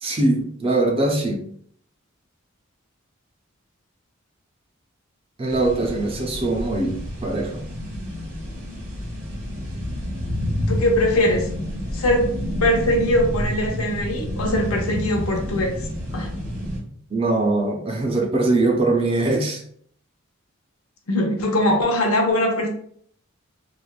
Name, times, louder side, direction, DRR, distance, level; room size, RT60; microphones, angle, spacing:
voice 1, 0.0-1.4 5.4-7.6 17.1-19.6, right 2 dB, 25° right, 1 dB, 0.4 m, -22 dB
sound 1, 5.5-16.8, left 1 dB, 85° right, 1.1 m, -29 dB
voice 2, 10.7-11.5 11.9-12.3 12.6-15.7 16.1-16.3 21.1-22.7, left 1 dB, 80° left, 2 dB, 0.6 m, -21 dB
3.2 x 2.1 x 2.3 m, 0.62 s
head